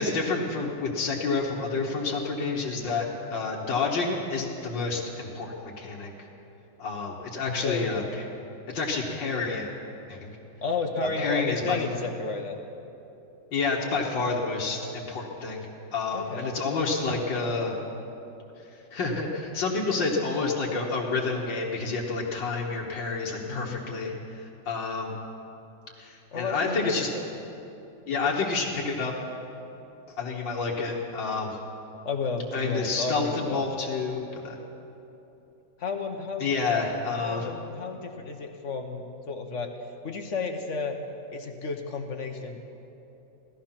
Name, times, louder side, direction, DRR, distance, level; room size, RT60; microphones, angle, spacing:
voice 1, 0.0-6.1 6.8-8.0 8.7-9.7 10.1-10.4 11.2-11.8 13.5-15.6 15.9-17.7 18.9-24.1 24.7-25.1 26.0-27.1 28.1-29.1 30.2-31.6 32.5-34.6 36.4-37.5, left 4 dB, 85° left, -3 dB, 2.1 m, -29 dB
voice 2, 7.5-7.9 10.6-12.6 16.1-16.6 23.5-23.8 26.3-27.3 32.0-33.6 35.8-36.5 37.1-41.0 41.3-42.6, left 4 dB, 50° left, 4 dB, 1.1 m, -32 dB
17.0 x 14.0 x 5.9 m, 2.9 s
omnidirectional pair, 2.0 m